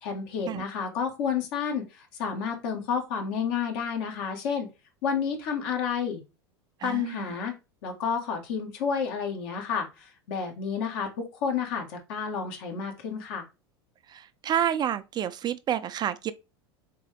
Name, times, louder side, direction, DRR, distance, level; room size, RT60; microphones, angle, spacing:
voice 1, 0.0-4.7 5.0-6.2 6.8-7.5 7.8-13.4, left 6 dB, 65° left, 1.5 m, -30 dB
voice 2, 6.8-7.3 14.1-16.3, right 10 dB, 30° right, 0.4 m, -29 dB
3.8 x 3.7 x 3.4 m
hypercardioid pair, 95°, 13 cm